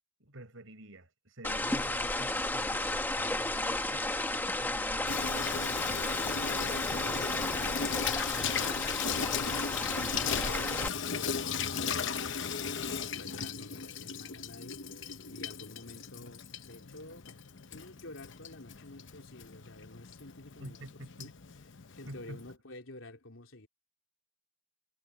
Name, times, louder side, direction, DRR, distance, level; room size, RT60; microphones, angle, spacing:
voice 1, 0.2-4.1 4.6-8.2 20.6-21.3 22.1-22.4, right 1 dB, 90° right, 5.3 m, -49 dB
sound 1, 1.4-10.9, left 2 dB, 10° left, 1.4 m, -33 dB
Water tap faucet / Sink (filling or washing), 5.1-22.5, left 6 dB, 65° left, 0.9 m, -37 dB
voice 2, 10.0-12.0 12.4-17.3 17.7-20.8 21.2-21.3 22.0-23.7, left 2 dB, 85° left, 3.4 m, -49 dB
head